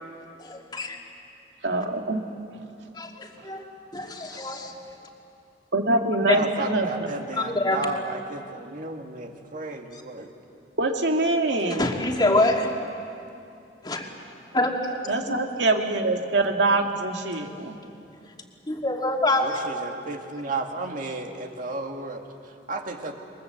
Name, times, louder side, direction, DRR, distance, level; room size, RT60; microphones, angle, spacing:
voice 1, 0.4-1.0 2.9-3.6 3.9-4.7 6.3-6.4 7.3-7.8 11.7-12.7 13.8-14.1 14.5-15.4 18.7-19.6, left 2 dB, 25° left, 1 dB, 2.5 m, -25 dB
voice 2, 1.6-2.2 3.4-3.5 5.7-7.1 10.8-11.9 15.1-17.7, right 2 dB, 90° right, 3 dB, 2.2 m, -24 dB
voice 3, 6.3-10.3 19.4-23.1, right 2 dB, 50° right, 3 dB, 2.2 m, -33 dB
28.0 x 23.0 x 7.9 m, 2.6 s
head